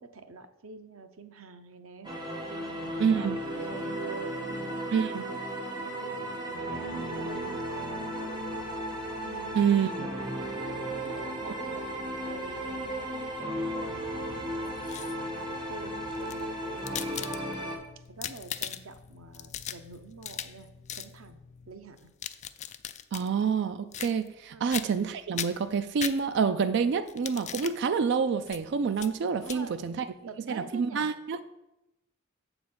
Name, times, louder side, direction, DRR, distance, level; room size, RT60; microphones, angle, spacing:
voice 1, 0.0-2.1 2.5-5.4 5.8-8.4 9.2-9.7 10.6-11.9 12.2-14.7 15.1-17.0 18.1-21.4 21.7-22.1 24.5-24.7 29.4-31.1, right 3 dB, 90° right, 8 dB, 0.8 m, -47 dB
sound 1, 2.0-17.8, right 1 dB, 20° right, 1.2 m, -35 dB
voice 2, 3.0-3.4 4.9-5.2 9.5-10.1 11.5-11.6 23.1-30.0 30.5-31.4, right 6 dB, 60° right, 11 dB, 0.4 m, -27 dB
sound 2, 6.9-21.7, left 5 dB, 80° left, 0.6 m, -54 dB
sound 3, 14.7-15.4 16.1-17.7 18.1-19.0 19.3-20.6 20.9-21.1 22.0-23.3 23.9-24.4 24.7-25.1 25.4-26.6 27.1-27.8 28.5-28.6 29.0-29.1 29.4-29.6, left 10 dB, 35° left, 0.3 m, -38 dB
7.8 x 3.9 x 6.7 m, 0.91 s
head